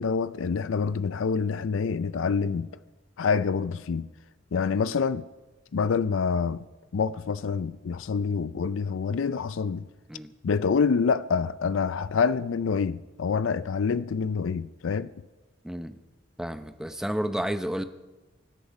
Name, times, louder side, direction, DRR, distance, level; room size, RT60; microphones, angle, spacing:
voice 1, 0.0-2.7 3.2-4.1 4.5-5.3 5.7-6.7 6.9-9.9 10.4-15.1, left 5 dB, 80° left, 0.4 m, -26 dB
voice 2, 15.6-16.0 16.4-17.8, equal, 5° right, 0.6 m, -31 dB
24.5 x 10.5 x 5.3 m
head